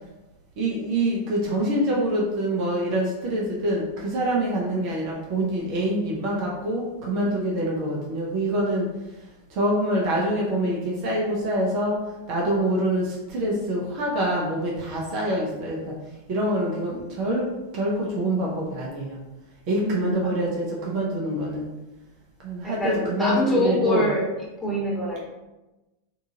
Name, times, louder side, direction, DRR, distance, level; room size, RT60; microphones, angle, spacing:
voice 1, 0.6-8.9 9.5-12.0 12.3-15.9 16.3-17.5 17.7-19.2 19.7-21.7 22.4-24.0, right 1 dB, 45° right, -3 dB, 0.6 m, -25 dB
voice 2, 19.8-20.3 22.6-24.3 24.6-25.3, left 1 dB, 5° left, -6 dB, 1.1 m, -25 dB
3.7 x 2.4 x 2.7 m, 1.0 s
figure-of-eight pair, 90°, 0 cm